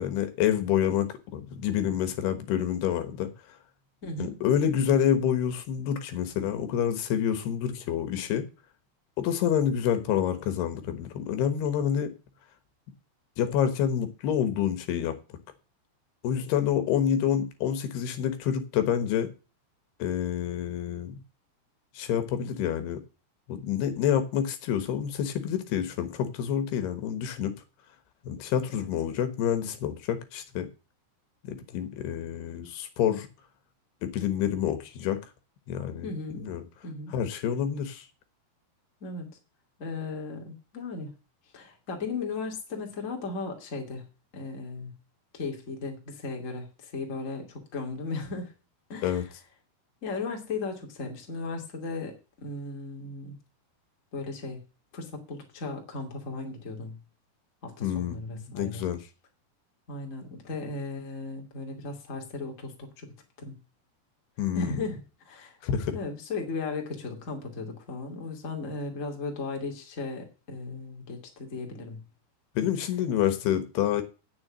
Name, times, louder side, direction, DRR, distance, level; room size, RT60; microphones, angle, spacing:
voice 1, 0.0-3.3 4.2-8.4 9.2-12.1 13.4-15.2 16.2-19.3 20.0-21.2 21.9-23.0 23.5-27.6 28.2-30.7 31.4-33.3 34.0-35.2 35.7-36.1 36.4-36.6 37.1-38.1 49.0-49.2 57.8-58.2 58.5-59.0 64.4-64.8 65.6-66.0 72.6-74.0, left 9 dB, 75° left, 3.1 m, -28 dB
voice 2, 4.0-4.4 36.0-36.5 36.8-37.1 39.0-39.3 39.8-41.1 41.5-44.0 44.3-44.9 45.3-48.5 48.9-49.2 50.0-53.4 54.1-54.6 54.9-57.0 57.6-58.9 59.9-63.1 63.4-63.5 64.5-65.6 65.9-72.0, left 3 dB, 25° left, 2.1 m, -36 dB
9.7 x 7.1 x 7.3 m
omnidirectional pair, 4.8 m